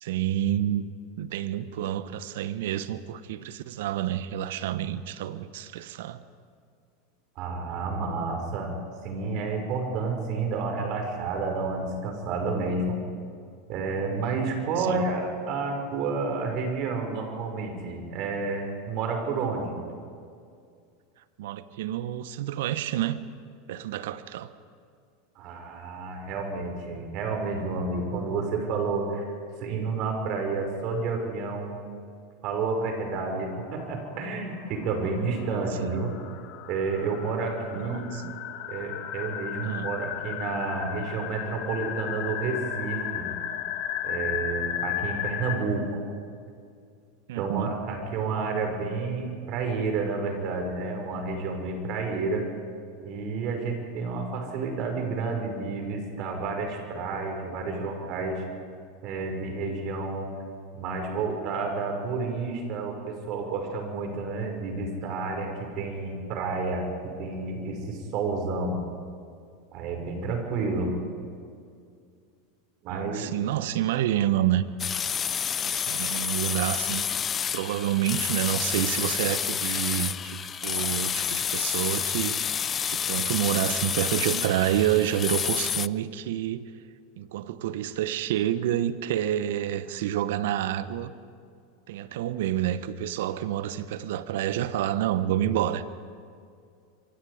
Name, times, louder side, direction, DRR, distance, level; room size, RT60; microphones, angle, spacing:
voice 1, 0.0-0.9 1.2-6.2 14.8-15.0 21.4-23.2 23.7-24.5 35.8-36.1 37.8-38.3 39.6-39.9 47.3-47.7 72.9-74.6 75.6-77.1 77.5-82.5 82.9-86.6 87.2-91.1 91.9-95.8, right 12 dB, 70° right, 13 dB, 1.1 m, -28 dB
voice 2, 7.4-8.7 9.0-13.0 13.7-19.8 25.4-29.2 29.6-31.8 32.4-36.1 36.7-38.1 38.7-43.3 44.0-46.0 47.4-52.5 53.0-58.4 59.0-60.3 60.7-68.8 69.7-70.9 72.8-73.3, right 4 dB, 50° right, 3 dB, 5.6 m, -30 dB
sound 1, 32.7-45.6, left 10 dB, 55° left, 2.2 m, -35 dB
sound 2, 74.8-85.9, left 8 dB, 30° left, 0.5 m, -29 dB
27.5 x 24.0 x 5.1 m, 2.3 s
hypercardioid pair, 90°, 0 cm